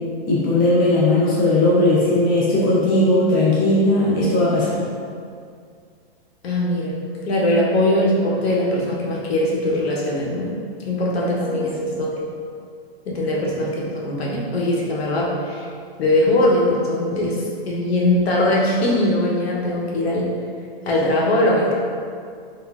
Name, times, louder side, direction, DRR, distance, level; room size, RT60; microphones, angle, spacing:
voice 1, 0.2-4.8 11.5-11.6, left 1 dB, 20° left, -7 dB, 0.4 m, -17 dB
voice 2, 6.4-10.5 10.9-12.1 13.1-15.7 16.0-17.4 17.7-20.3 20.9-21.7, left 1 dB, 90° left, -4 dB, 0.8 m, -21 dB
3.2 x 2.4 x 2.3 m, 2.2 s
hypercardioid pair, 155°, 31 cm